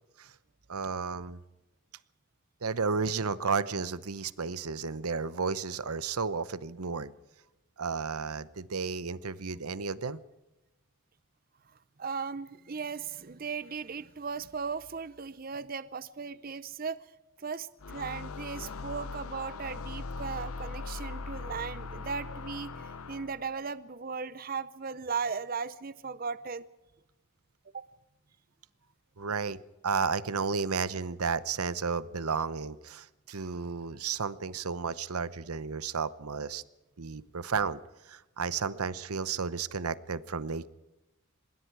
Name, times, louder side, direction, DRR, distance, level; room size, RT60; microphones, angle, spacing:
voice 1, 0.7-1.4 2.6-7.1 7.8-10.2 29.2-29.6 29.8-36.6 37.0-37.8 38.1-40.7, right 5 dB, 90° right, 16 dB, 0.9 m, -32 dB
voice 2, 11.7-17.1 17.4-26.6 27.7-27.9, right 5 dB, 40° right, 15 dB, 0.6 m, -37 dB
sound 1, 17.8-23.5, left 3 dB, 80° left, 0.7 m, -40 dB
25.5 x 21.5 x 4.8 m, 1.0 s
head